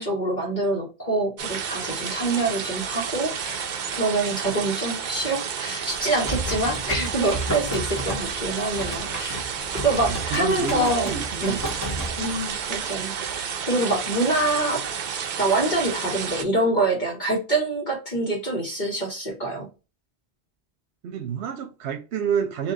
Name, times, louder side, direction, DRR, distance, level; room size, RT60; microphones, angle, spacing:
voice 1, 0.0-3.7 3.9-9.4 9.8-11.1 11.4-11.6 12.2-14.8 15.4-19.7, right 2 dB, 45° left, 1.3 m, -25 dB
sound 1, 1.4-16.4, right 7 dB, 55° right, 0.6 m, -31 dB
sound 2, 5.9-12.7, right 1 dB, 15° left, 0.9 m, -32 dB
voice 2, 10.1-11.6 12.2-12.3 21.0-22.7, right 7 dB, 75° right, 0.9 m, -29 dB
3.9 x 2.8 x 3.8 m
omnidirectional pair, 1.1 m